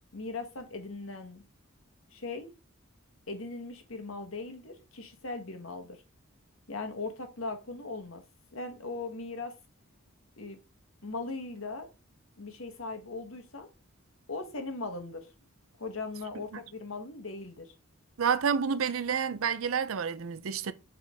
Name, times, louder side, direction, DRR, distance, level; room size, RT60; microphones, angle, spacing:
voice 1, 0.1-1.4 2.1-2.5 3.3-6.0 6.7-8.2 8.5-9.6 10.4-10.6 11.0-11.9 12.4-13.7 14.3-15.3 15.8-17.7, left 3 dB, 70° left, 1.4 m, -39 dB
voice 2, 18.2-20.7, right 6 dB, 75° right, 0.5 m, -29 dB
6.3 x 4.5 x 3.4 m
head